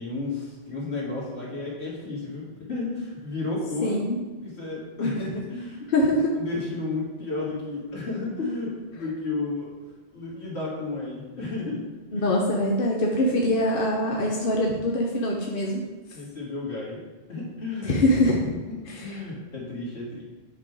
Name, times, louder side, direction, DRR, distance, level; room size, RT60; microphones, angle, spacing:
voice 1, 0.0-4.1 4.4-5.8 6.3-9.7 10.1-11.9 12.1-12.3 16.1-17.0 17.3-18.0 18.6-20.2, left 3 dB, 75° left, -5 dB, 2.3 m, -32 dB
voice 2, 3.8-4.2 5.0-5.1 5.9-6.4 12.1-15.8 17.8-18.5 19.0-19.1, left 1 dB, 60° left, -1 dB, 0.9 m, -23 dB
8.0 x 3.8 x 4.7 m, 1.3 s
omnidirectional pair, 1.1 m